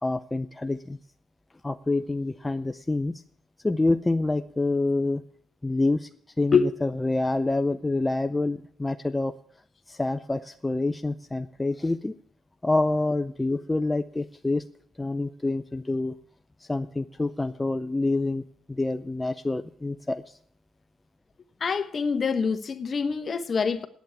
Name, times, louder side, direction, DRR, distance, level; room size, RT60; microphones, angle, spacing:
voice 1, 0.0-1.0 1.6-3.2 3.6-5.2 5.6-6.1 6.4-9.3 9.9-12.1 12.6-14.6 15.0-16.1 16.7-20.4, left 2 dB, 15° left, 0.5 m, -27 dB
voice 2, 21.6-23.9, left 5 dB, 40° left, 1.0 m, -25 dB
9.3 x 8.7 x 9.3 m
cardioid pair, 90°, 0 cm